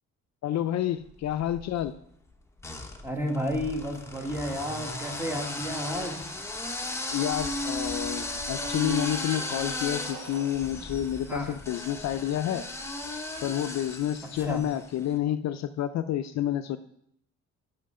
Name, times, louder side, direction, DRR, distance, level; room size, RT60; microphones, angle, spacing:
voice 1, 0.4-1.9 7.1-12.6 13.4-16.8, left 11 dB, 65° left, 10 dB, 0.5 m, -29 dB
sound 1, 1.2-1.9 2.6-14.9, left 2 dB, 10° left, 1.0 m, -35 dB
voice 2, 3.0-6.4 11.3-11.6 14.4-14.6, equal, 5° right, 2 dB, 1.4 m, -32 dB
sound 2, 3.8-7.7 8.5-12.1, right 4 dB, 70° right, 1.3 m, -50 dB
6.7 x 5.7 x 5.4 m, 0.71 s
cardioid pair, 90°, 30 cm